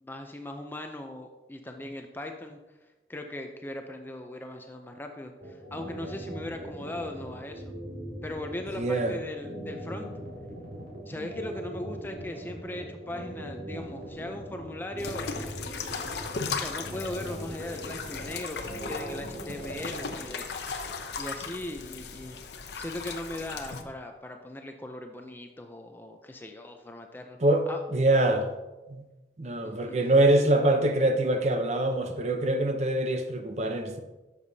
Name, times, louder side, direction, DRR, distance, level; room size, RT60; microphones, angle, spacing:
voice 1, 0.0-2.6 3.1-7.7 8.2-10.1 11.1-15.3 16.3-20.5 21.2-22.4 22.8-27.4 27.7-27.8 29.6-30.0, left 1 dB, 10° left, 0.5 m, -39 dB
sound 1, 5.4-20.1, right 1 dB, 60° right, 2.3 m, -40 dB
voice 2, 8.7-9.2 11.1-11.2 27.4-28.5 28.9-29.0 29.4-34.0, right 1 dB, 40° right, 0.7 m, -24 dB
sound 2, 15.0-23.8, left 5 dB, 75° left, 0.7 m, -37 dB
11.0 x 7.0 x 2.8 m
head